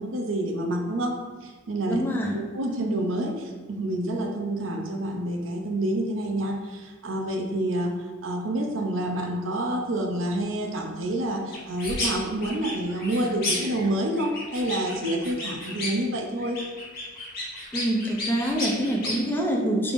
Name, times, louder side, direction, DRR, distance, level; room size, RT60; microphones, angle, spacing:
voice 1, 0.0-2.0 2.3-7.9 8.2-16.6, right 1 dB, 80° right, 3 dB, 0.6 m, -28 dB
voice 2, 1.9-2.4 17.7-19.9, right 1 dB, 10° left, -1 dB, 0.5 m, -25 dB
sound 1, 11.5-12.1 12.4-13.9 14.2-16.1 16.4-19.2, left 2 dB, 50° left, 1.3 m, -32 dB
5.0 x 3.4 x 2.5 m, 1.4 s
head